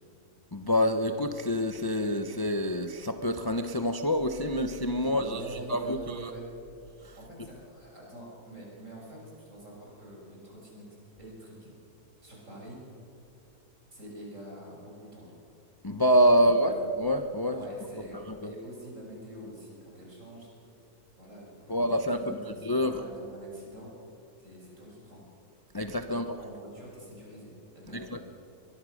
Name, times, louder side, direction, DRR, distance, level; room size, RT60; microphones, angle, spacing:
voice 1, 0.5-5.4 5.7-6.3 7.0-7.2 15.8-17.6 18.1-18.5 21.7-22.3 22.6-23.0 25.7-26.2 27.9-28.2, equal, 20° left, 7 dB, 0.7 m, -26 dB
voice 2, 5.0-6.4 7.2-10.8 11.2-11.7 12.2-12.8 13.9-15.4 16.4-16.8 17.5-20.5 21.2-21.9 22.2-23.9 24.4-25.2 26.1-28.2, right 1 dB, 55° right, -3 dB, 6.8 m, -45 dB
22.5 x 22.0 x 6.5 m, 2.8 s
omnidirectional pair, 1.6 m